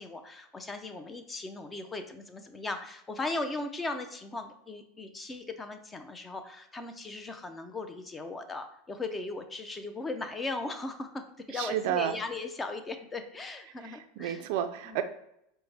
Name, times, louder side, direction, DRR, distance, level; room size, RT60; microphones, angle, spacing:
voice 1, 0.0-14.5 14.9-15.0, left 3 dB, 20° left, 7 dB, 0.5 m, -38 dB
voice 2, 11.5-12.2 13.8-15.0, right 10 dB, 65° right, 8 dB, 0.3 m, -31 dB
4.6 x 2.1 x 3.4 m, 0.77 s
hypercardioid pair, 105°, 0 cm